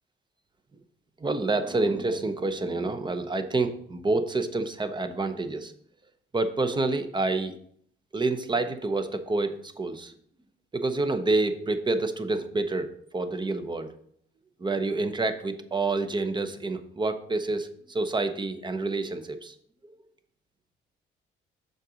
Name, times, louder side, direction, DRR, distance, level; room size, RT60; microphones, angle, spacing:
voice 1, 1.2-5.7 6.3-7.6 8.1-10.1 10.7-13.9 14.6-19.5, right 3 dB, 25° right, 9 dB, 0.7 m, -28 dB
6.4 x 3.9 x 5.0 m, 0.66 s
cardioid pair, 90°, 20 cm